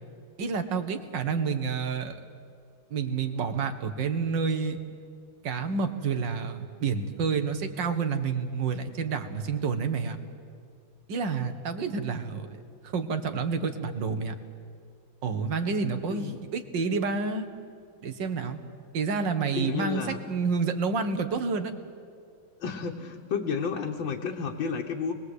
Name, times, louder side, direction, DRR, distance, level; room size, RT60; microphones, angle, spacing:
voice 1, 0.4-2.1 2.9-4.8 5.4-10.2 11.1-14.4 15.2-17.5 18.0-18.6 18.9-21.7, right 5 dB, 65° right, 8 dB, 2.0 m, -29 dB
voice 2, 16.1-16.4 19.5-20.2 22.6-25.1, left 6 dB, 70° left, 0 dB, 2.0 m, -31 dB
28.0 x 21.0 x 8.1 m, 2.3 s
omnidirectional pair, 2.2 m